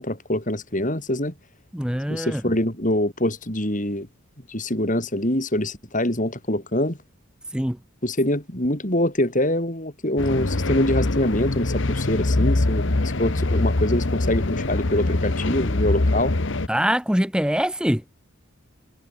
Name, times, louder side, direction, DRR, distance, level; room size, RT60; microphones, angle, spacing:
voice 1, 0.0-1.3 2.1-4.1 4.5-7.0 8.0-16.3, left 1 dB, 35° left, 4.3 m, -24 dB
voice 2, 1.7-2.6 7.5-7.8 16.7-18.0, equal, 5° right, 1.4 m, -23 dB
sound 1, 10.2-16.7, left 2 dB, 60° left, 1.2 m, -23 dB
head